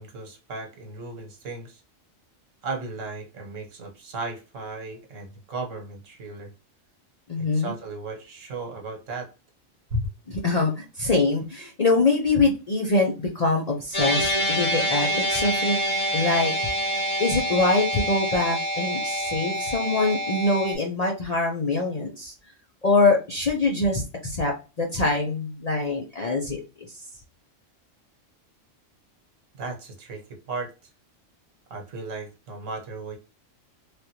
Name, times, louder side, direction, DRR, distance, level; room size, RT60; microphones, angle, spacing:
voice 1, 0.0-1.8 2.6-6.5 7.4-9.3 9.9-10.1 29.5-30.7 31.7-33.2, right 2 dB, 70° right, 2 dB, 1.4 m, -35 dB
voice 2, 7.3-7.7 10.3-15.8 16.1-16.7 17.2-22.3 22.8-26.6, left 3 dB, 40° left, -1 dB, 0.6 m, -24 dB
sound 1, 13.9-20.7, equal, 60° left, 1.5 m, -26 dB
3.3 x 2.5 x 2.8 m, 0.30 s
omnidirectional pair, 1.4 m